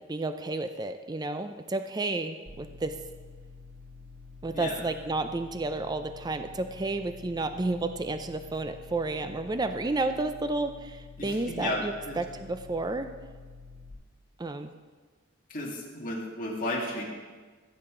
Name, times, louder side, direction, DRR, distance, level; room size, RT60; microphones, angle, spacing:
voice 1, 0.1-2.9 4.4-13.1 14.4-14.7, right 2 dB, 20° right, 8 dB, 0.4 m, -31 dB
sound 1, 2.5-13.9, left 3 dB, 45° right, 2.1 m, -48 dB
voice 2, 11.2-12.2 15.5-17.0, left 1 dB, 40° left, -3 dB, 2.2 m, -33 dB
15.0 x 8.6 x 3.8 m, 1.4 s
head